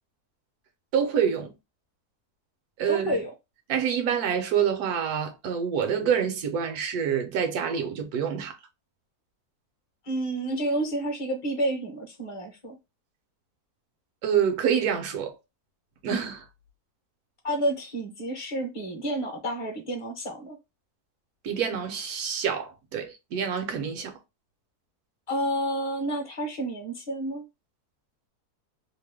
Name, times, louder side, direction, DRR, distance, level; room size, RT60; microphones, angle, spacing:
voice 1, 0.9-1.5 2.8-3.2 3.7-8.6 14.2-15.4 16.0-16.4 21.4-24.1, right 8 dB, 75° right, 1.2 m, -27 dB
voice 2, 2.9-3.3 10.1-12.8 17.4-20.6 25.3-27.4, right 1 dB, 25° left, 0.8 m, -30 dB
3.0 x 2.1 x 3.3 m
omnidirectional pair, 1.7 m